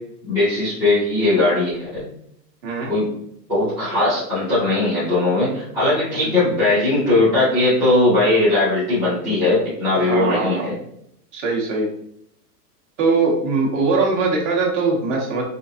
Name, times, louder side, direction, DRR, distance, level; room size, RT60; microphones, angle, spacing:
voice 1, 0.2-2.1 2.9-3.0 3.5-10.7, left 2 dB, 5° right, -14 dB, 0.4 m, -19 dB
voice 2, 2.6-2.9 6.2-6.3 10.0-10.7 11.3-11.9 13.0-15.4, right 3 dB, 45° right, -2 dB, 1.3 m, -21 dB
5.0 x 2.5 x 2.6 m, 0.73 s
supercardioid pair, 160°, 50 cm